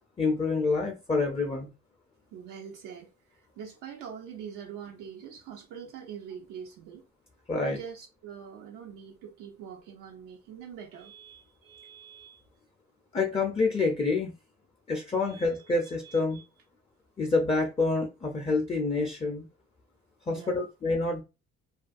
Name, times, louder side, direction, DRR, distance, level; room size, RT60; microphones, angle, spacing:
voice 1, 0.2-1.7 7.5-7.8 13.1-14.3 14.9-16.4 17.2-19.4 20.3-21.2, left 3 dB, 20° left, 0.4 m, -27 dB
voice 2, 2.3-7.0 7.6-12.4 15.2-16.4 20.3-20.7, right 8 dB, 90° right, 0.5 m, -44 dB
2.4 x 2.2 x 2.4 m
cardioid pair, 90°, 30 cm